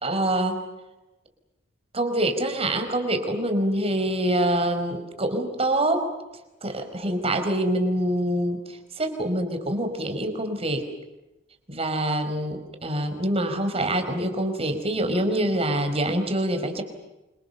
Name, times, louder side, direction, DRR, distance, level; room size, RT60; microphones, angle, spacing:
voice 1, 0.0-0.6 1.9-6.1 6.6-10.9 11.7-16.8, right 1 dB, 30° right, 6 dB, 4.9 m, -25 dB
29.0 x 26.0 x 6.9 m, 1.0 s
head